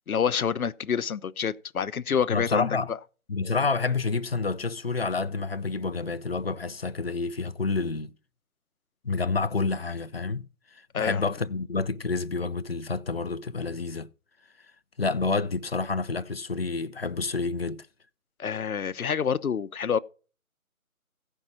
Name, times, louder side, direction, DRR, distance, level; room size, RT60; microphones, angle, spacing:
voice 1, 0.1-3.0 10.9-11.2 18.4-20.0, left 7 dB, 75° left, 0.8 m, -27 dB
voice 2, 2.3-2.9 3.3-8.1 9.0-10.5 10.7-14.1 15.0-17.9, left 4 dB, 45° left, 0.5 m, -29 dB
16.0 x 5.4 x 5.8 m
figure-of-eight pair, 160°, 43 cm